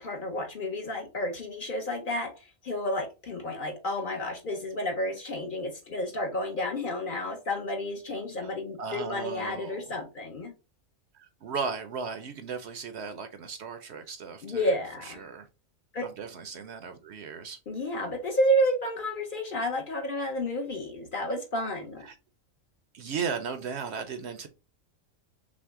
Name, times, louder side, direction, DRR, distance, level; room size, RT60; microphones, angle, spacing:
voice 1, 0.0-10.5 14.4-15.2 15.9-16.1 17.7-22.1, equal, 45° left, 0.8 m, -31 dB
voice 2, 8.8-9.8 11.1-15.5 16.0-17.6 22.0-22.2 22.9-24.5, right 5 dB, 65° right, 0.8 m, -36 dB
6.0 x 2.1 x 3.5 m
omnidirectional pair, 1.4 m